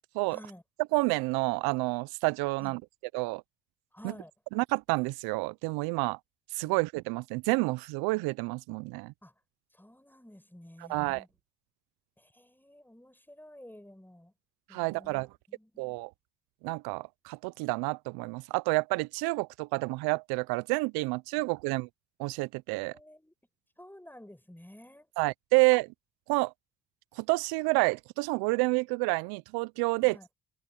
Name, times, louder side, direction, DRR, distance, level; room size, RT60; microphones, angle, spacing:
voice 1, 0.3-0.6 2.6-2.8 3.9-4.3 6.6-6.8 9.2-9.3 9.7-11.3 12.2-14.3 14.7-16.0 21.4-21.5 22.7-23.3 23.8-25.1 30.0-30.3, left 1 dB, 5° left, 6.9 m, -52 dB
voice 2, 0.9-2.8 3.1-3.4 4.0-4.1 4.5-6.2 6.5-9.1 10.9-11.2 14.7-15.3 15.8-16.1 16.6-21.9 22.2-22.9 25.2-25.9 26.3-26.5 27.2-30.2, right 26 dB, 85° right, 0.5 m, -29 dB
supercardioid pair, 60°, 36 cm